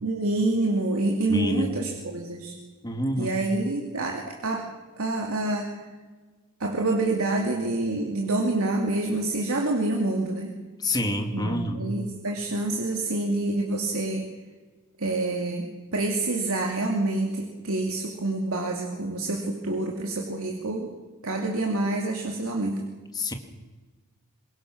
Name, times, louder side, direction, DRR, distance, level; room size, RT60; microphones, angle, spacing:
voice 1, 0.0-2.6 3.2-4.6 5.0-5.7 6.6-10.5 11.3-14.3 15.0-20.9 21.2-22.8, right 2 dB, 75° right, 1 dB, 2.6 m, -27 dB
voice 2, 1.3-1.8 2.8-3.4 10.8-11.8 23.1-23.3, left 1 dB, 20° left, 5 dB, 2.0 m, -27 dB
24.5 x 21.0 x 6.3 m, 1.3 s
head